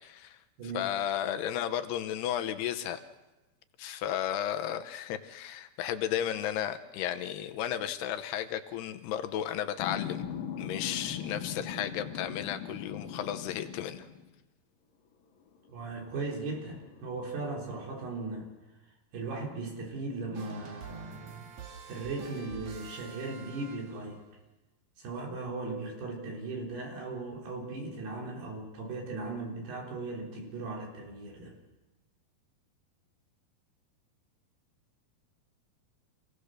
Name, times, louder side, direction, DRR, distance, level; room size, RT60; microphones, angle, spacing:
voice 1, 0.0-0.4 0.7-3.0 3.8-10.2 10.6-14.1, left 10 dB, 80° left, 8 dB, 2.9 m, -33 dB
sound 1, 9.8-14.3 15.5-15.7 16.1-18.1, left 8 dB, 60° left, 3.7 m, -40 dB
voice 2, 15.7-18.5 19.1-21.5 21.9-24.2 25.0-31.5, right 3 dB, 70° right, -1 dB, 5.9 m, -38 dB
sound 2, 20.3-24.2, right 6 dB, 55° right, 2.8 m, -47 dB
27.0 x 17.0 x 6.6 m, 1.1 s
omnidirectional pair, 4.7 m